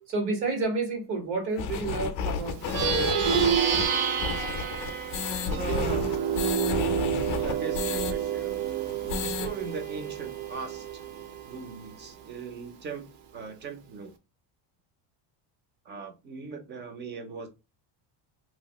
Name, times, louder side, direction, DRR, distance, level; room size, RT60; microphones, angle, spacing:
voice 1, 0.1-3.3, right 3 dB, 90° right, 1.7 m, -31 dB
sound 1, 1.6-8.1 8.5-8.6 8.9-9.5, left 6 dB, 40° left, 0.4 m, -32 dB
Plucked string instrument, 2.5-12.3, right 8 dB, 70° right, 0.8 m, -29 dB
voice 2, 5.5-6.1 7.4-8.6 9.2-11.0 11.5-14.1 15.9-17.5, right 4 dB, 25° right, 0.4 m, -39 dB
2.9 x 2.2 x 2.8 m
cardioid pair, 160°, 48 cm